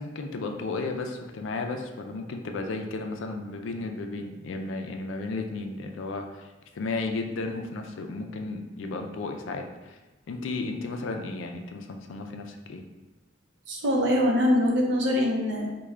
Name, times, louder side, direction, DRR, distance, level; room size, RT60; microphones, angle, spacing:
voice 1, 0.0-6.5 6.8-9.9 10.3-12.8, left 3 dB, 75° left, 4 dB, 0.4 m, -34 dB
voice 2, 13.7-15.7, left 1 dB, 60° right, -1 dB, 0.7 m, -23 dB
3.2 x 2.2 x 3.5 m, 1.2 s
head